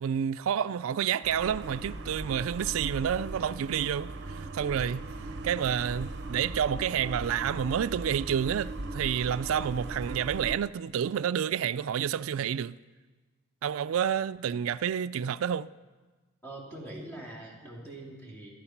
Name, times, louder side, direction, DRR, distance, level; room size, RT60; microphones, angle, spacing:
voice 1, 0.0-5.0 5.4-12.8 13.6-15.7, right 8 dB, 75° right, 0.3 m, -29 dB
sound 1, 1.2-10.6, right 2 dB, 55° right, 0.8 m, -39 dB
voice 2, 16.4-18.5, right 1 dB, 10° left, 3.0 m, -43 dB
14.0 x 12.0 x 5.9 m
head